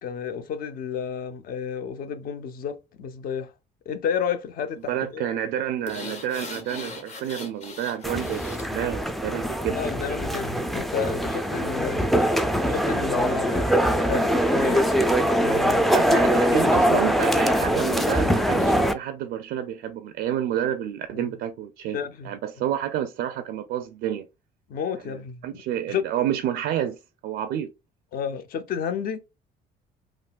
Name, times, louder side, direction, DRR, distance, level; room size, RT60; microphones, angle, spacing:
voice 1, 0.0-3.5 3.9-5.3 9.7-12.1 12.7-14.9 15.4-15.9 16.5-17.1 21.1-21.3 21.9-22.3 24.7-25.6 25.9-26.0 28.1-29.2, left 7 dB, 60° left, 0.6 m, -31 dB
voice 2, 4.9-9.8 15.9-22.0 22.2-24.3 25.0-27.7, right 10 dB, 75° right, 0.4 m, -29 dB
sound 1, 5.9-8.7 9.1-9.2, left 3 dB, 40° left, 1.0 m, -39 dB
sound 2, 8.0-18.9, equal, ahead, 0.3 m, -22 dB
sound 3, 12.0-15.6, right 1 dB, 85° left, 1.6 m, -44 dB
3.7 x 2.4 x 2.3 m
cardioid pair, 110°, 17 cm